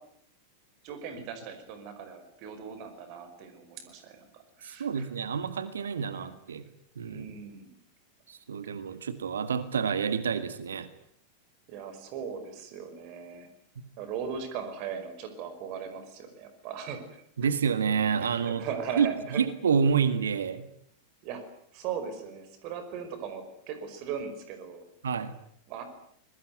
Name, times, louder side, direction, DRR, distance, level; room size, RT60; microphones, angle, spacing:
voice 1, 0.8-5.1 6.1-6.3 7.0-7.7 11.7-13.5 14.0-17.2 18.2-19.4 21.2-21.4 21.7-24.8 25.7-25.8, right 7 dB, 45° right, 9 dB, 5.2 m, -38 dB
voice 2, 4.6-6.6 7.0-7.3 8.3-10.9 17.4-18.7 19.0-19.1 19.4-20.7 25.0-25.4, right 6 dB, 65° right, 13 dB, 1.9 m, -28 dB
26.0 x 22.0 x 9.4 m, 0.68 s
figure-of-eight pair, 90°, 0 cm